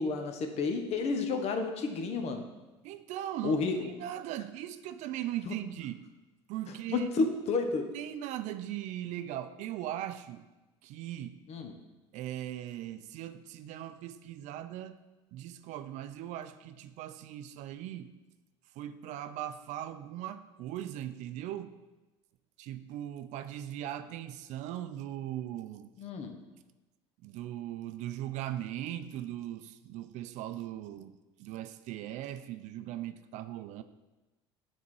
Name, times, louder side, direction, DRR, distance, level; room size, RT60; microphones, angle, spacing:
voice 1, 0.0-2.5 3.4-3.9 5.5-5.6 6.9-7.9 11.5-11.7 26.0-26.3, left 4 dB, 50° left, 6 dB, 1.0 m, -31 dB
voice 2, 2.8-6.1 6.5-7.3 7.9-10.4 10.8-11.4 12.1-15.0 15.3-18.1 18.8-21.8 22.6-25.9 27.2-33.8, right 12 dB, 60° right, 11 dB, 0.4 m, -39 dB
7.0 x 4.2 x 4.8 m, 1.1 s
hypercardioid pair, 75°, 14 cm